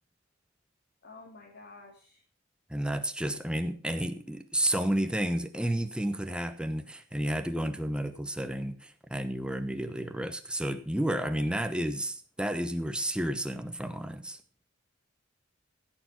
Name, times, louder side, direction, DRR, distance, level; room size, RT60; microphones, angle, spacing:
voice 1, 1.0-2.2 11.3-11.4, left 3 dB, 55° left, 3.1 m, -50 dB
voice 2, 2.7-14.4, right 1 dB, 5° right, 1.1 m, -31 dB
16.0 x 7.0 x 6.0 m
head